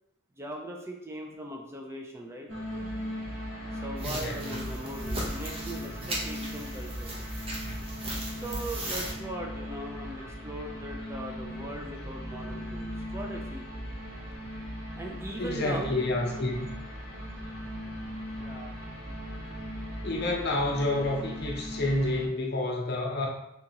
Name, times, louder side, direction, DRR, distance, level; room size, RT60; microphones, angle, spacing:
voice 1, 0.4-2.5 3.8-7.1 8.3-13.7 14.9-15.9 18.4-18.7, right 1 dB, 15° right, 0 dB, 0.4 m, -39 dB
sound 1, 2.5-22.3, equal, 80° right, 1.2 m, -39 dB
voice 2, 4.0-4.6 15.4-16.7 20.0-23.3, left 2 dB, 55° left, -1 dB, 0.7 m, -29 dB
sound 2, 4.0-9.1, right 1 dB, 30° right, 0.7 m, -37 dB
3.6 x 2.8 x 2.8 m, 0.82 s
head